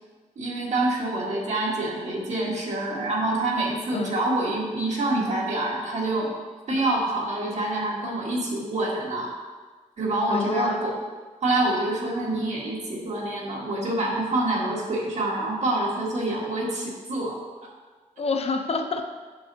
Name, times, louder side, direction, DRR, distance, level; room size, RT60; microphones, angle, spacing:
voice 1, 0.4-6.3 6.7-9.3 10.0-10.9 11.4-17.4, right 2 dB, 60° right, -3 dB, 1.6 m, -26 dB
voice 2, 10.3-10.8 12.2-12.5 18.2-19.1, left 4 dB, 50° left, 5 dB, 0.6 m, -28 dB
8.5 x 6.4 x 2.8 m, 1.4 s
wide cardioid pair, 120°, 14 cm